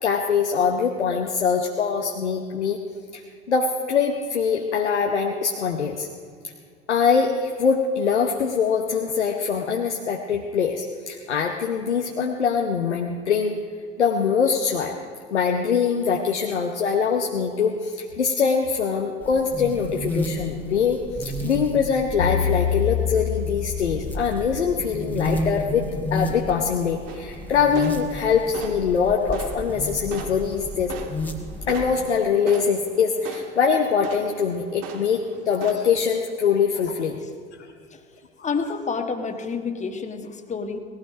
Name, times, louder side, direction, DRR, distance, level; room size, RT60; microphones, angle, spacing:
voice 1, 0.0-2.8 3.1-6.1 6.9-13.6 14.0-14.9 15.3-25.8 26.1-30.9 31.7-37.2, left 6 dB, 80° left, 2 dB, 1.0 m, -23 dB
sound 1, 19.2-32.1, left 1 dB, 5° left, 1.7 m, -32 dB
sound 2, 22.2-24.9, left 8 dB, 55° left, 2.1 m, -26 dB
sound 3, 27.1-35.7, right 6 dB, 55° right, 1.6 m, -40 dB
voice 2, 38.4-40.8, left 5 dB, 20° left, 6 dB, 1.4 m, -29 dB
19.0 x 14.5 x 5.1 m, 2.2 s
figure-of-eight pair, 70°, 34 cm